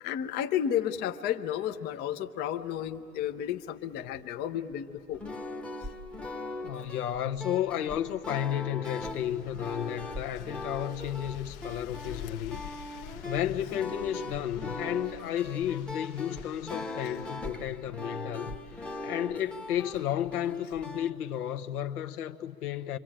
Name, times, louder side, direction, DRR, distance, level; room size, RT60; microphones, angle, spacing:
voice 1, 0.0-5.2 5.8-5.9, left 10 dB, 20° left, 0.6 m, -32 dB
sound 1, 5.1-21.1, left 2 dB, 5° left, 1.0 m, -40 dB
voice 2, 6.6-12.6 13.2-23.0, left 11 dB, 70° left, 1.2 m, -32 dB
sound 2, 9.1-17.4, left 10 dB, 45° left, 1.0 m, -47 dB
28.0 x 24.0 x 8.9 m
hypercardioid pair, 120°, 47 cm